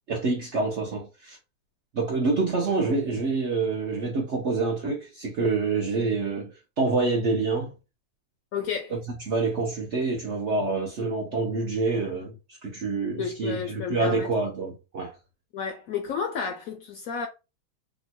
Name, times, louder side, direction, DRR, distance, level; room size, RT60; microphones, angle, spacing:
voice 1, 0.1-1.4 1.9-7.7 9.3-15.1, right 3 dB, 65° right, 0.7 m, -27 dB
voice 2, 8.5-8.9 13.2-14.3 15.5-17.3, left 6 dB, 70° left, 0.8 m, -31 dB
2.9 x 2.1 x 4.1 m
omnidirectional pair, 1.9 m